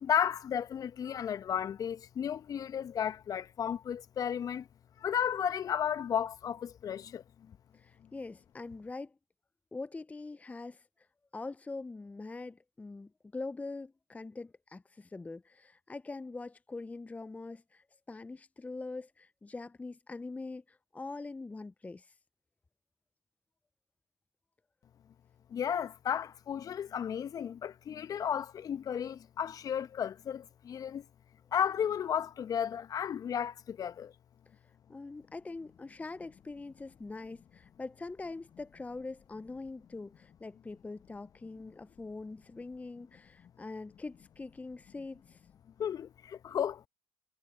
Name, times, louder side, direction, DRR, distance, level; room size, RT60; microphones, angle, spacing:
voice 1, 0.0-4.6 5.0-7.2 25.5-31.0 31.5-34.1 45.8-46.1 46.4-46.9, left 8 dB, 45° left, 1.2 m, -33 dB
voice 2, 7.7-9.1 9.7-11.1 11.3-22.1 34.9-45.4, left 3 dB, 15° left, 0.7 m, -43 dB
hypercardioid pair, 55°, 8 cm